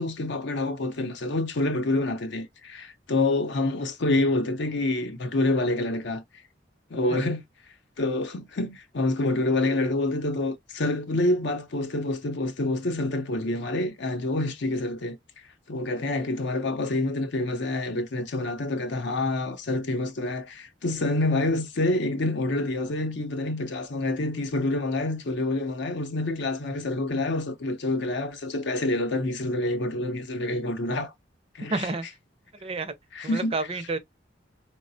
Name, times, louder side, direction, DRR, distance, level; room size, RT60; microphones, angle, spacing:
voice 1, 0.0-6.2 6.9-7.4 8.0-15.2 15.7-31.1 31.5-31.9 33.1-33.5, left 2 dB, 65° left, 0.6 m, -27 dB
voice 2, 31.7-32.1 32.6-32.9 33.2-34.0, right 3 dB, 30° right, 0.5 m, -29 dB
4.0 x 2.1 x 2.6 m
head